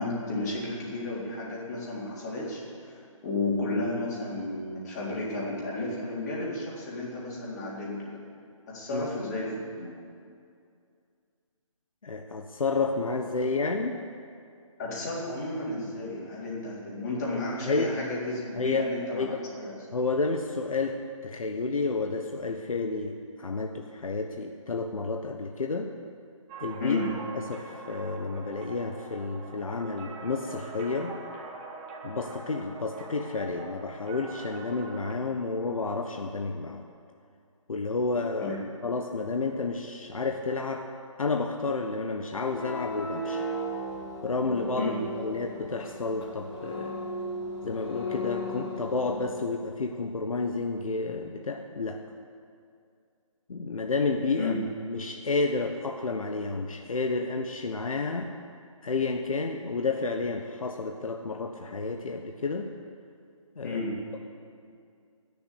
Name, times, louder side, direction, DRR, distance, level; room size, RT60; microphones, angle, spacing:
voice 1, 0.0-8.2 8.7-10.0 14.8-19.8 26.8-27.1 38.4-38.6 44.8-45.0 54.4-54.6 63.6-64.0, left 2 dB, 30° left, -6 dB, 4.0 m, -33 dB
voice 2, 12.0-14.0 17.6-17.9 18.6-19.4 19.9-25.9 26.6-27.0 27.5-31.2 32.0-36.8 37.7-38.6 38.8-40.9 41.2-43.4 44.2-44.9 45.2-47.0 47.6-52.0 53.5-54.5 54.9-58.3 58.8-62.7 63.6-63.8, left 3 dB, 80° left, 4 dB, 1.2 m, -30 dB
sound 1, 26.5-35.1, right 3 dB, 15° right, 1.2 m, -43 dB
sound 2, 42.4-49.4, equal, 50° left, 3.7 m, -36 dB
20.0 x 7.0 x 8.5 m, 2.4 s
hypercardioid pair, 160°, 18 cm